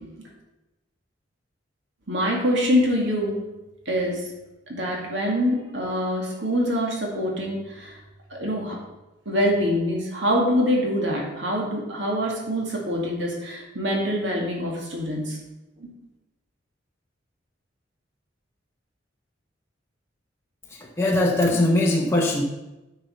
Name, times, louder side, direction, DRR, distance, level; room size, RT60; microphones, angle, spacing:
voice 1, 2.1-3.4 3.9-4.3 4.7-8.0 8.3-8.8 9.3-15.4 15.8-15.9, equal, 70° right, -1 dB, 2.1 m, -25 dB
voice 2, 20.7-22.4, left 1 dB, 15° left, -2 dB, 0.8 m, -21 dB
10.0 x 5.5 x 5.6 m, 1.0 s
head